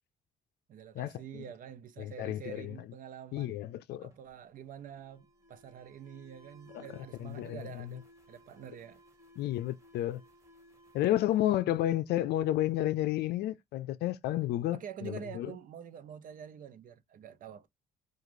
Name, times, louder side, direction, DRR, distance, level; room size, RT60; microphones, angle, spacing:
voice 1, 0.7-3.6 4.0-9.0 11.5-11.6 14.7-17.7, right 8 dB, 55° right, 0.7 m, -47 dB
voice 2, 2.0-2.7 3.3-4.1 6.7-6.8 7.2-7.8 9.4-10.2 10.9-15.5, left 13 dB, 75° left, 0.5 m, -31 dB
Alarm, 4.1-12.7, equal, 15° right, 1.9 m, -60 dB
4.9 x 2.4 x 3.1 m
cardioid pair, 110°, 17 cm